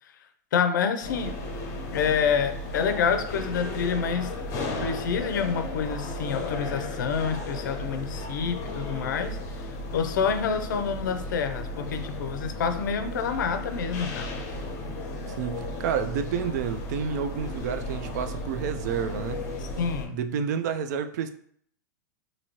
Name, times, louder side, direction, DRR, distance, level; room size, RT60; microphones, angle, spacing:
voice 1, 0.5-1.3 1.9-4.3 4.8-9.4 9.7-14.4 19.6-20.2, left 6 dB, 80° left, 0.5 m, -28 dB
sound 1, 1.0-20.1, left 1 dB, 35° left, 0.8 m, -35 dB
voice 2, 15.4-19.4 20.0-21.3, right 7 dB, 65° right, 0.4 m, -29 dB
3.0 x 2.7 x 2.8 m
hypercardioid pair, 135°, 10 cm